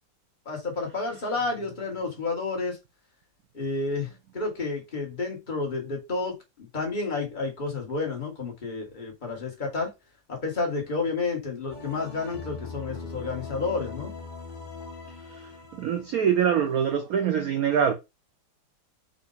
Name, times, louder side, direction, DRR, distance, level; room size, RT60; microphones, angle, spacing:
voice 1, 0.4-2.8 3.5-9.9 10.3-14.1, left 3 dB, 25° left, 1.5 m, -30 dB
sound 1, 11.7-17.1, left 3 dB, 50° left, 0.5 m, -41 dB
voice 2, 15.3-17.9, right 8 dB, 65° right, 0.9 m, -25 dB
5.0 x 2.6 x 3.9 m
omnidirectional pair, 2.1 m